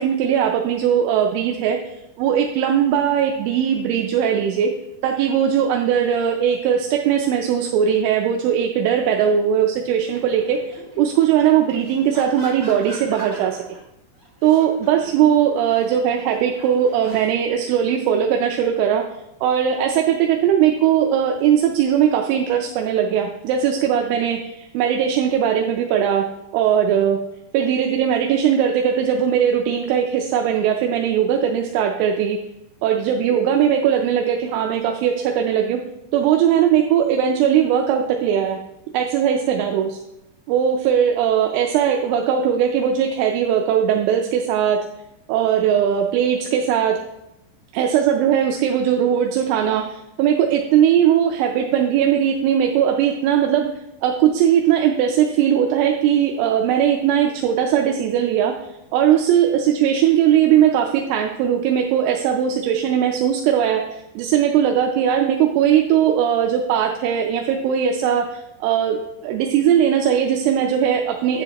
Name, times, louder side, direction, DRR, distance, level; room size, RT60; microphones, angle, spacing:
voice 1, 0.0-1.8 2.2-4.7 5.0-13.6 14.4-19.0 19.4-26.2 26.5-27.2 27.5-32.4 32.8-35.8 36.1-38.6 38.9-40.0 40.5-44.8 45.3-47.0 47.7-53.7 54.0-58.5 58.9-71.4, right 9 dB, 85° right, 2 dB, 3.0 m, -19 dB
sound 1, 10.1-13.8 14.2-17.3, equal, 10° left, 1.8 m, -40 dB
10.5 x 7.3 x 2.9 m, 0.90 s
omnidirectional pair, 5.8 m